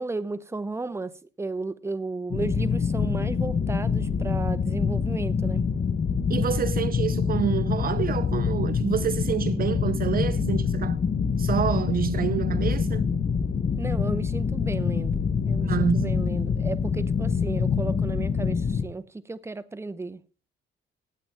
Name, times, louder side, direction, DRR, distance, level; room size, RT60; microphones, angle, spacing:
voice 1, 0.0-5.6 13.8-20.2, right 3 dB, 15° right, 0.8 m, -34 dB
sound 1, 2.3-18.8, left 6 dB, 40° left, 1.0 m, -25 dB
voice 2, 6.3-11.0 11.4-13.1 15.6-16.2, right 9 dB, 50° right, 0.5 m, -28 dB
16.0 x 8.8 x 3.4 m
cardioid pair, 90°, 20 cm